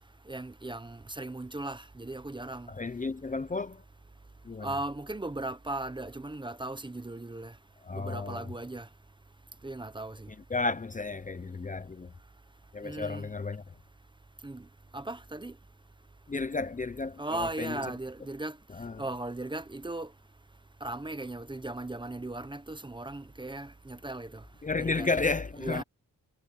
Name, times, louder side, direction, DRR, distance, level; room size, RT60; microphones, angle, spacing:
voice 1, 0.3-2.7 4.6-7.5 7.9-8.9 9.6-10.3 12.8-13.3 14.4-14.6 14.9-15.5 17.2-18.6 19.0-20.1 20.8-24.4 24.8-25.2 25.6-25.8, right 2 dB, 15° right, 0.9 m, -37 dB
voice 2, 2.7-3.8 4.4-4.7 7.8-8.4 10.5-12.1 12.7-13.6 16.3-17.8 18.7-19.0 24.6-25.8, left 3 dB, 25° left, 0.7 m, -32 dB
wide cardioid pair, 135°, 33 cm